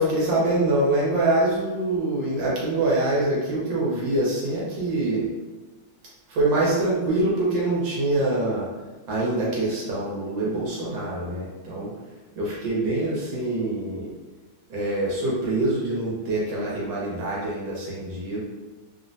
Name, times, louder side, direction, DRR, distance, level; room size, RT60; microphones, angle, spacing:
voice 1, 0.0-5.3 6.3-8.7 9.1-11.9 12.4-14.1 14.7-18.4, right 2 dB, 75° right, -5 dB, 1.6 m, -25 dB
3.6 x 2.2 x 2.6 m, 1.3 s
omnidirectional pair, 2.2 m